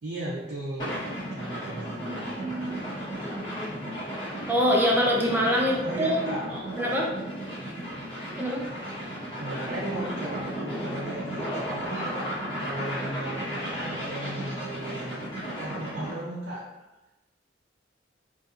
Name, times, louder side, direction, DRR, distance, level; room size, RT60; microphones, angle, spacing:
voice 1, 0.0-1.1 1.3-2.7 5.8-6.6 9.4-15.3 15.6-16.6, right 1 dB, 60° right, -6 dB, 0.5 m, -36 dB
sound 1, 0.8-16.2, equal, 25° left, 1.1 m, -34 dB
voice 2, 2.1-2.8 3.2-3.7 4.5-6.3 6.8-7.1 8.4-8.6, equal, 10° right, -2 dB, 0.4 m, -25 dB
2.7 x 2.5 x 2.4 m, 1.1 s
head